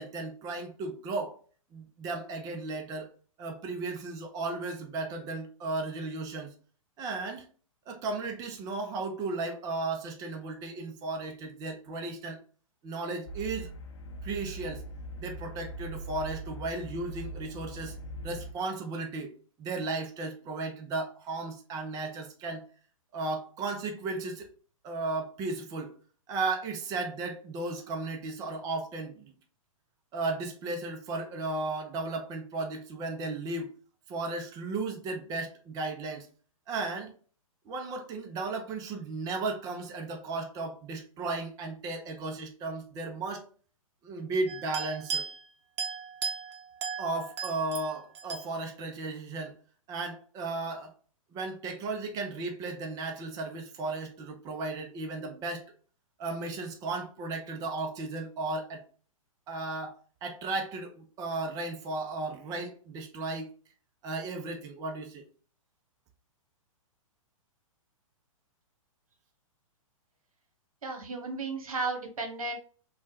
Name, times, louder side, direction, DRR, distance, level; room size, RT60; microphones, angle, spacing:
voice 1, 0.0-1.4 1.7-3.1 3.4-6.5 7.0-7.5 7.9-12.4 12.8-13.7 14.2-14.8 15.2-17.9 18.2-19.3 19.6-22.7 23.1-24.5 24.8-26.0 26.3-29.3 30.1-33.7 34.1-36.3 36.7-37.1 37.7-43.4 44.0-45.3 47.0-49.5 49.9-50.9 51.3-55.6 56.2-58.9 59.5-63.5 64.0-65.2, right 3 dB, 20° right, 0.4 m, -35 dB
sound 1, 13.3-18.5, right 1 dB, 55° left, 0.6 m, -41 dB
sound 2, 44.5-45.5 45.8-48.4, right 6 dB, 55° right, 0.8 m, -36 dB
voice 2, 70.8-72.5, right 3 dB, 80° right, 1.0 m, -34 dB
3.1 x 2.2 x 2.9 m
hypercardioid pair, 125°, 18 cm